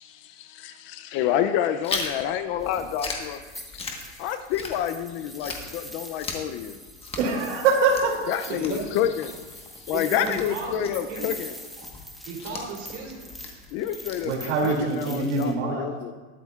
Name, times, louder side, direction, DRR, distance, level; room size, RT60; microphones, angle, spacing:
voice 1, 0.0-6.8 8.3-11.5 13.7-14.3 14.6-16.1, left 10 dB, 35° left, 10 dB, 0.4 m, -29 dB
Chewing mastication, 1.8-5.1 5.4-14.8, left 4 dB, 15° left, 1.2 m, -38 dB
sound 1, 2.6-15.5, equal, ahead, 0.9 m, -44 dB
voice 2, 7.2-8.3 14.2-15.9, right 4 dB, 75° right, 0 dB, 2.6 m, -24 dB
voice 3, 8.5-8.9 9.9-11.3 12.3-13.3, right 4 dB, 55° right, -1 dB, 3.5 m, -34 dB
21.0 x 8.2 x 2.4 m, 1.3 s
supercardioid pair, 145°, 36 cm